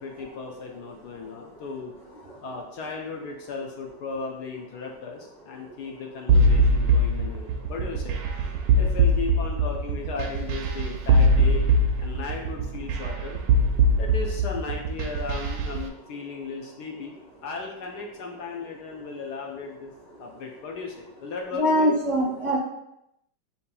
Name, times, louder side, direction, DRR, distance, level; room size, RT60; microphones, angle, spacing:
voice 1, 0.0-1.9 2.4-8.2 8.8-11.6 12.0-13.4 14.0-17.1 17.4-19.9 20.2-22.0, left 4 dB, 70° left, 1 dB, 1.1 m, -36 dB
sound 1, 6.3-15.8, right 1 dB, 75° right, 1.0 m, -21 dB
voice 2, 21.5-22.6, equal, 35° right, -6 dB, 0.5 m, -24 dB
7.4 x 2.8 x 2.2 m, 0.83 s
omnidirectional pair, 2.0 m